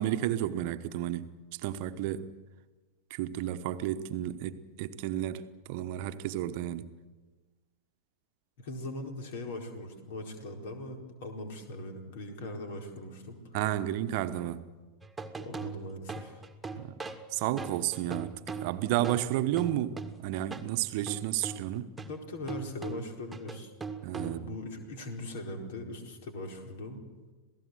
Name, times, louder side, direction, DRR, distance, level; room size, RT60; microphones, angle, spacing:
voice 1, 0.0-2.4 3.1-6.9 13.5-14.7 16.7-16.9 17.3-21.9 24.0-24.6, right 13 dB, 45° right, 1.1 m, -32 dB
voice 2, 8.6-13.6 15.4-16.4 22.1-23.7 24.2-27.0, left 1 dB, 55° left, 4.3 m, -40 dB
sound 1, 15.0-20.7 21.1-24.6, right 4 dB, 10° right, 1.8 m, -41 dB
27.5 x 17.5 x 7.9 m
figure-of-eight pair, 90°, 0 cm